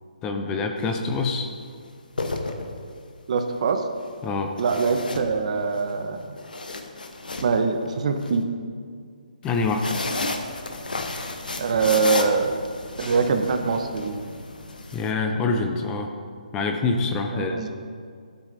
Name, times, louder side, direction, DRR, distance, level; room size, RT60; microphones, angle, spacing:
voice 1, 0.2-1.5 4.2-4.5 9.4-9.9 14.9-16.1 16.5-17.7, left 3 dB, 15° left, 4 dB, 0.5 m, -25 dB
sound 1, 0.8-1.0 1.9-3.1 4.6-5.8 6.2-8.3 9.4-15.1, left 2 dB, 75° left, 1.0 m, -32 dB
voice 2, 3.3-3.9 4.6-6.4 7.4-8.4 11.6-12.6 13.0-14.2 17.3-17.7, right 4 dB, 50° right, 7 dB, 0.8 m, -23 dB
12.5 x 8.3 x 2.7 m, 2.1 s
figure-of-eight pair, 145°, 5 cm